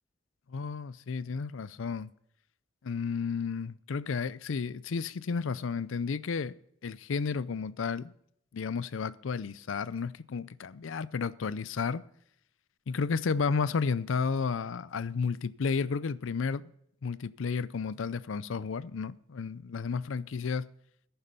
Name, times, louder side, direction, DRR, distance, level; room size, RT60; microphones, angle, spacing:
voice 1, 0.5-2.1 2.8-6.6 6.8-8.1 8.5-12.0 12.9-16.7 17.0-20.7, left 5 dB, 80° left, 0.5 m, -32 dB
11.5 x 9.9 x 5.4 m
head